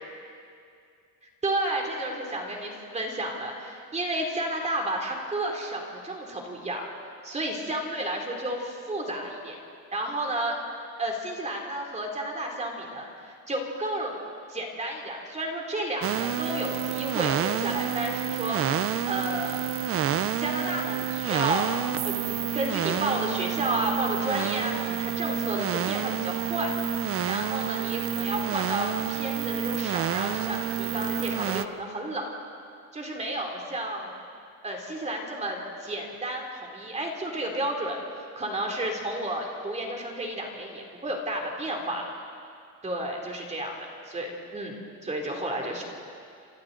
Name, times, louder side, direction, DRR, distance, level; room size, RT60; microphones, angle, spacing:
voice 1, 1.4-6.8 7.2-9.6 9.9-10.6 11.0-14.2 14.5-18.6 19.0-19.6 20.4-21.7 22.0-26.7 27.2-32.4 32.9-34.1 34.6-38.0 38.3-42.0 42.8-45.8, right 1 dB, 20° right, 1 dB, 2.9 m, -32 dB
sound 1, 16.0-31.7, right 9 dB, 40° right, 0.6 m, -29 dB
28.5 x 26.5 x 3.9 m, 2.4 s
cardioid pair, 155°, 37 cm